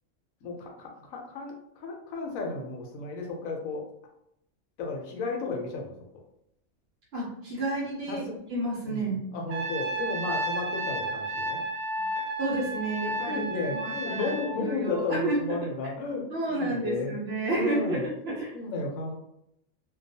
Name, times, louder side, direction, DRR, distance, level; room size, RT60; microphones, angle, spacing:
voice 1, 0.4-3.9 4.8-5.9 8.1-8.4 8.8-11.6 12.1-12.3 13.2-17.1 17.5-18.1 18.5-19.2, left 3 dB, 75° left, 1 dB, 1.0 m, -33 dB
voice 2, 7.1-8.2 8.5-9.2 12.4-15.7 16.3-18.5, right 2 dB, 60° right, -4 dB, 0.7 m, -31 dB
Trumpet, 9.5-14.6, right 2 dB, 85° right, 1.0 m, -32 dB
2.3 x 2.2 x 2.6 m, 0.78 s
omnidirectional pair, 1.4 m